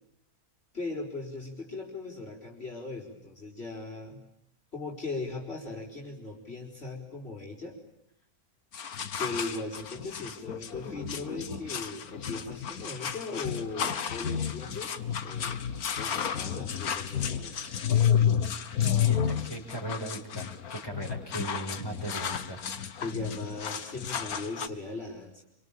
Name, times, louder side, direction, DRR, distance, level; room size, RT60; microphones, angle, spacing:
voice 1, 0.7-4.2 4.7-7.8 9.2-15.6 15.9-17.8 23.0-25.4, left 3 dB, 45° left, -2 dB, 4.8 m, -38 dB
sound 1, 8.7-24.7, left 8 dB, 80° left, 1.8 m, -31 dB
voice 2, 19.0-22.6, right 1 dB, 15° left, 1 dB, 5.2 m, -38 dB
27.0 x 25.0 x 8.8 m, 0.78 s
omnidirectional pair, 1.5 m